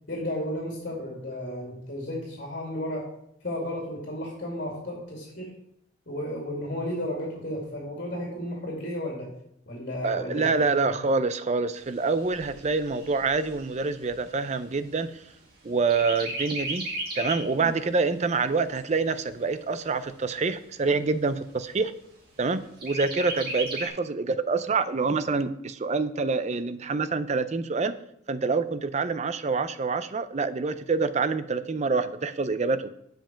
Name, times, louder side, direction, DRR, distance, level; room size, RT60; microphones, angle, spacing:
voice 1, 0.1-3.1 3.4-5.5 6.1-9.3 9.7-10.9, left 1 dB, 50° left, -2 dB, 2.3 m, -33 dB
voice 2, 10.0-15.2 15.6-16.9 17.2-21.9 22.4-28.0 28.3-32.9, right 4 dB, 35° right, 12 dB, 0.5 m, -26 dB
Chirp tweet, 11.8-15.5 15.9-17.6 18.0-18.1 18.4-19.4 20.0-20.1 20.5-20.6 21.0-21.5 22.8-23.9, right 1 dB, 50° right, 2.2 m, -35 dB
7.5 x 5.2 x 7.4 m, 0.76 s
head